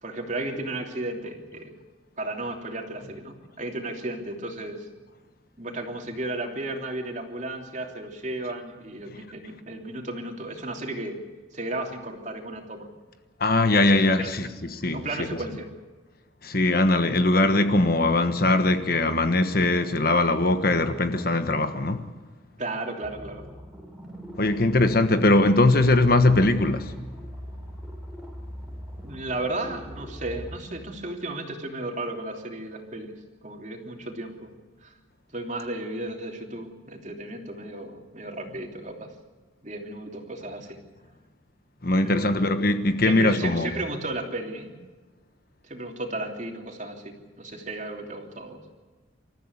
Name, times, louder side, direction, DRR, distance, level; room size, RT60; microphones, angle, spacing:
voice 1, 0.0-1.7 2.2-4.9 5.6-11.2 11.5-12.9 13.9-14.3 14.9-15.7 22.6-23.5 29.0-33.1 33.4-34.5 34.8-35.0 35.3-39.1 39.6-40.8 42.0-42.4 43.0-44.7 45.6-48.6, right 2 dB, 40° right, 3.2 m, -34 dB
voice 2, 13.4-15.3 16.4-22.1 24.4-26.9 41.8-43.7, left 2 dB, 50° left, 1.3 m, -21 dB
sound 1, 23.0-30.6, equal, ahead, 3.4 m, -41 dB
27.5 x 14.0 x 8.1 m
head